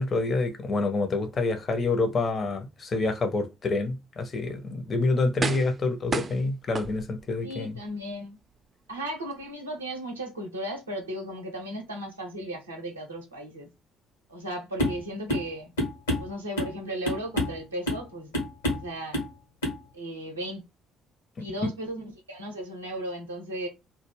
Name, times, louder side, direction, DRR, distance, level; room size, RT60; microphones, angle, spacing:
voice 1, 0.0-7.8, left 3 dB, 40° left, 0.5 m, -27 dB
sound 1, 4.5-4.6 5.4-5.8 6.1-7.4 7.9-8.0, right 4 dB, 30° right, 0.3 m, -31 dB
voice 2, 7.4-8.4 8.9-13.7 14.3-15.7 16.2-18.3 18.7-19.2 19.9-20.6 21.4-23.7, right 1 dB, 80° right, 0.5 m, -36 dB
sound 2, 14.8-15.0 15.3-15.5 15.8-16.8 17.1-17.6 17.9-18.1 18.3-18.9 19.1-19.3 19.6-19.8, equal, 80° left, 0.8 m, -28 dB
2.2 x 2.0 x 3.1 m
figure-of-eight pair, 45°, 0 cm